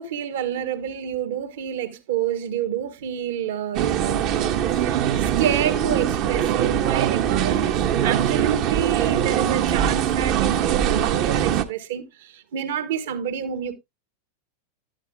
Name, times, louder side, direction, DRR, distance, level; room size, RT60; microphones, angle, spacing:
voice 1, 0.0-13.7, right 9 dB, 55° right, 1.2 m, -28 dB
sound 1, 3.7-11.6, right 10 dB, 40° right, 0.9 m, -22 dB
12.0 x 9.0 x 2.3 m
figure-of-eight pair, 90°, 0 cm